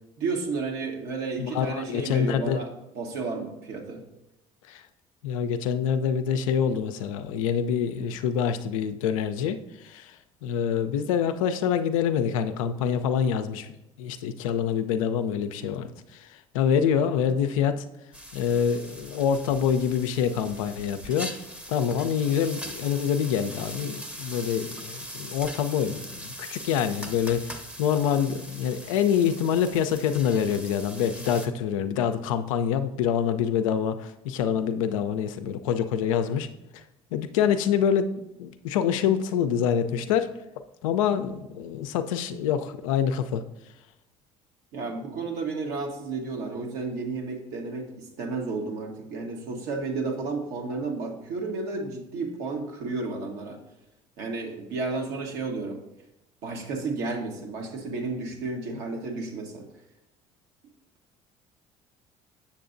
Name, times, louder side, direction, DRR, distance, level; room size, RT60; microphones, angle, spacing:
voice 1, 0.2-2.7 2.9-4.0 44.7-53.6 54.2-55.8 56.4-59.7, right 3 dB, 75° right, 2 dB, 1.2 m, -32 dB
voice 2, 1.4-2.6 4.7-4.9 5.2-17.8 18.3-21.3 21.7-36.5 36.7-36.9 37.1-40.3 40.8-43.4, left 8 dB, 85° left, 9 dB, 0.4 m, -26 dB
sound 1, 18.1-31.5, equal, 5° right, 0.7 m, -41 dB
7.1 x 6.9 x 2.5 m, 0.89 s
hypercardioid pair, 60°, 17 cm